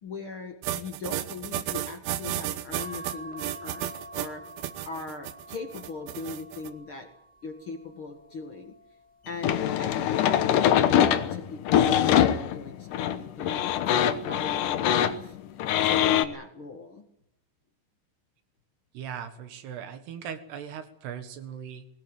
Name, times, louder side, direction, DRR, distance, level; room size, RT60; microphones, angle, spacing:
voice 1, 0.0-4.4 4.8-7.1 7.4-8.7 9.2-15.4 15.8-17.0, left 3 dB, 50° left, 4 dB, 1.5 m, -39 dB
sound 1, 0.6-6.7, right 13 dB, 85° right, 3.5 m, -33 dB
sound 2, 2.8-9.4 10.0-11.4 12.7-13.1 13.4-13.5, right 1 dB, 10° left, 0.5 m, -48 dB
sound 3, 9.4-16.3, left 10 dB, 90° left, 1.8 m, -23 dB
voice 2, 18.9-21.9, right 8 dB, 65° right, 9 dB, 3.4 m, -39 dB
20.5 x 18.5 x 9.1 m, 0.74 s
omnidirectional pair, 5.4 m